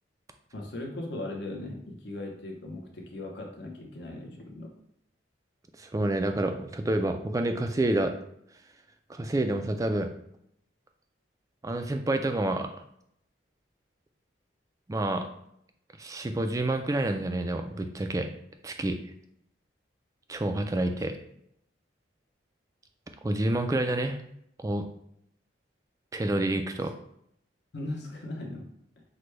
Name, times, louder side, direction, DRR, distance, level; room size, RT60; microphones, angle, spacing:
voice 1, 0.5-4.7 27.7-28.7, left 2 dB, 65° left, 1 dB, 0.8 m, -38 dB
voice 2, 5.8-8.1 9.1-10.1 11.6-12.7 14.9-15.3 16.0-18.3 18.6-19.0 20.3-21.1 23.2-24.2 24.6-24.8 26.1-26.9, right 1 dB, 15° right, 6 dB, 0.3 m, -28 dB
5.9 x 2.2 x 3.2 m, 0.73 s
head